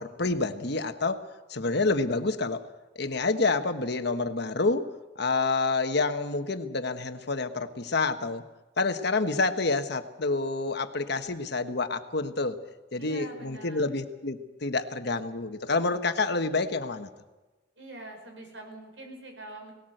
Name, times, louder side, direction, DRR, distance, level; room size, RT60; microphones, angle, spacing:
voice 1, 0.0-2.6 2.9-4.9 5.2-8.4 8.8-12.6 12.9-17.1, left 3 dB, 65° left, 8 dB, 1.3 m, -28 dB
voice 2, 13.0-13.9 17.8-19.7, right 1 dB, 80° right, 3 dB, 5.8 m, -44 dB
19.5 x 18.0 x 7.9 m, 1.1 s
head